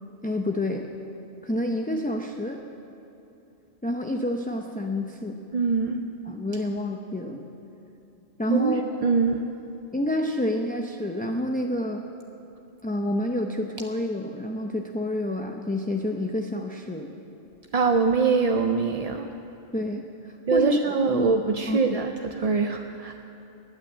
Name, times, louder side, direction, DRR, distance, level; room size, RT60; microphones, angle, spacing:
voice 1, 0.2-0.9 1.4-2.6 3.8-5.4 6.3-7.5 8.4-8.8 9.9-12.0 12.8-17.1 19.7-21.3 21.7-22.0, left 1 dB, 10° left, 2 dB, 0.5 m, -28 dB
voice 2, 5.5-6.0 8.5-8.8 9.0-9.4 17.7-19.3 20.5-23.1, right 5 dB, 45° right, 5 dB, 0.5 m, -23 dB
17.0 x 9.6 x 7.4 m, 2.8 s
omnidirectional pair, 1.2 m